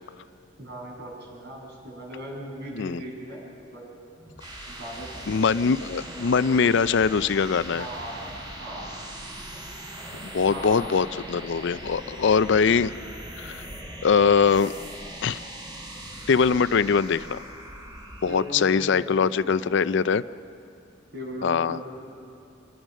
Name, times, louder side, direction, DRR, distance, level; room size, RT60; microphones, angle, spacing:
voice 1, 0.6-3.4 3.7-3.9 4.6-5.4 7.7-8.9 10.5-10.9 18.2-20.1 21.1-21.9, right 1 dB, 60° right, -3 dB, 7.9 m, -38 dB
sound 1, 4.1-18.7, right 1 dB, 25° right, 3.3 m, -40 dB
voice 2, 5.3-7.9 10.2-12.9 13.4-13.7 14.0-14.7 15.2-15.4 16.3-17.4 18.2-20.2 21.4-21.8, left 5 dB, 65° left, 15 dB, 0.5 m, -22 dB
26.5 x 21.0 x 6.4 m, 2.5 s
head